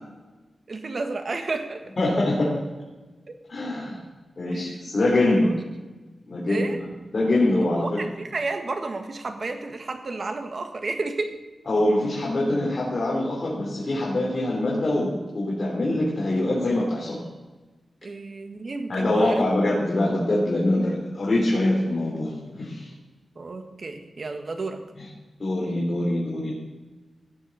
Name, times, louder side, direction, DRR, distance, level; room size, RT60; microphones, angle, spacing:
voice 1, 0.7-1.8 4.4-4.9 5.4-5.6 6.5-6.8 7.8-11.4 18.0-19.4 23.3-24.8, right 3 dB, 50° right, 6 dB, 1.6 m, -31 dB
voice 2, 2.0-2.6 3.5-4.0 4.4-5.5 6.3-6.7 7.1-8.1 11.7-17.2 18.9-22.9 25.4-26.5, left 1 dB, 45° left, -5 dB, 3.8 m, -24 dB
17.0 x 7.2 x 5.5 m, 1.2 s
wide cardioid pair, 120°, 0 cm